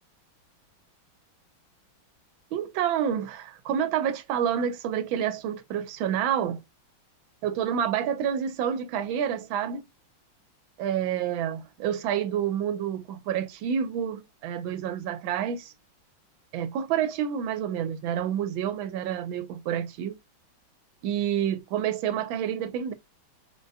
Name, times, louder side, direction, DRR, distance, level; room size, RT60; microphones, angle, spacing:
voice 1, 2.5-6.6 7.4-9.8 10.8-15.7 16.5-20.2 21.0-22.9, right 9 dB, 75° right, 1.4 m, -28 dB
4.0 x 2.1 x 2.6 m
omnidirectional pair, 2.2 m